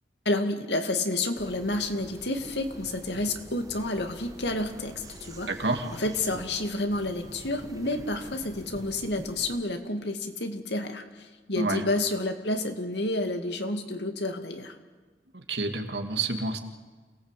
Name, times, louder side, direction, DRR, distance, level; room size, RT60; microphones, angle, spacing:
voice 1, 0.3-5.5 5.9-14.8, left 2 dB, 80° left, 6 dB, 2.4 m, -30 dB
sound 1, 1.3-9.6, right 1 dB, 20° right, 1.5 m, -46 dB
voice 2, 5.5-5.9 11.6-11.8 15.3-16.6, right 3 dB, 85° right, 5 dB, 2.5 m, -29 dB
28.0 x 18.5 x 8.4 m, 1.4 s
head